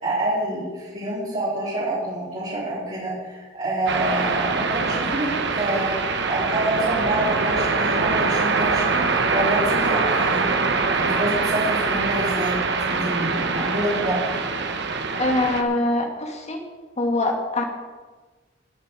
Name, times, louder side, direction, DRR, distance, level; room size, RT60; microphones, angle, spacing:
voice 1, 0.0-10.5 10.9-12.5 12.9-14.2, right 1 dB, 40° right, -12 dB, 4.4 m, -27 dB
sound 1, 3.9-15.6, right 4 dB, 65° right, 1.1 m, -23 dB
voice 2, 15.2-16.6 17.0-17.6, left 2 dB, 35° left, 3 dB, 1.9 m, -23 dB
19.5 x 7.4 x 4.9 m, 1.3 s
head